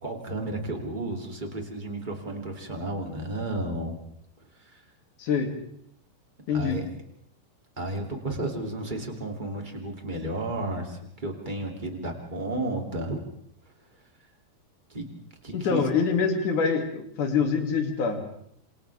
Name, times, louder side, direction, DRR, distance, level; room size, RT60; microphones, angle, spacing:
voice 1, 0.0-3.9 4.7-4.8 6.5-6.9 7.8-13.2 14.9-15.0 15.4-15.8, right 2 dB, 15° right, 1 dB, 2.2 m, -32 dB
voice 2, 5.2-5.5 6.5-6.8 15.5-18.2, left 5 dB, 50° left, 3 dB, 3.7 m, -25 dB
28.0 x 27.5 x 3.6 m, 0.69 s
omnidirectional pair, 5.0 m